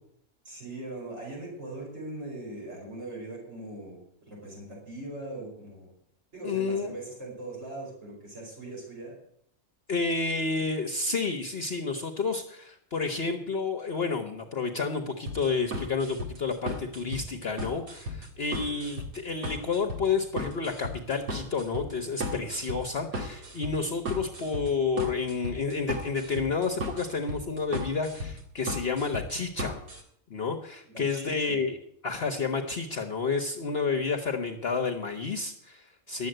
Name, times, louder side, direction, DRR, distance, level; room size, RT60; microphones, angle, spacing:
voice 1, 0.4-5.9 6.3-9.1 30.8-31.6, right 2 dB, 50° right, -3 dB, 5.2 m, -40 dB
voice 2, 6.4-7.0 9.9-29.8 30.3-31.8 32.0-36.3, left 4 dB, 50° left, 4 dB, 1.0 m, -30 dB
sound 1, 15.3-30.0, equal, 75° right, 2.3 m, -36 dB
11.5 x 7.8 x 7.8 m, 0.70 s
omnidirectional pair, 1.5 m